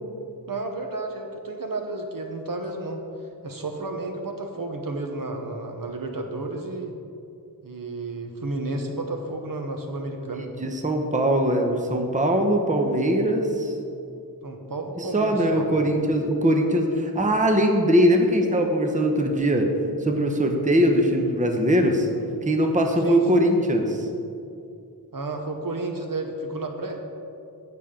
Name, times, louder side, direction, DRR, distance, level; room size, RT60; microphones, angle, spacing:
voice 1, 0.5-3.0 3.4-6.9 7.6-10.5 14.4-15.8 23.0-23.2 25.1-27.0, right 2 dB, 55° right, 4 dB, 1.0 m, -32 dB
voice 2, 10.6-13.7 15.0-19.7 20.0-22.1 22.4-24.1, equal, 20° right, 3 dB, 0.8 m, -21 dB
15.5 x 5.9 x 3.8 m, 2.6 s
wide cardioid pair, 100°, 40 cm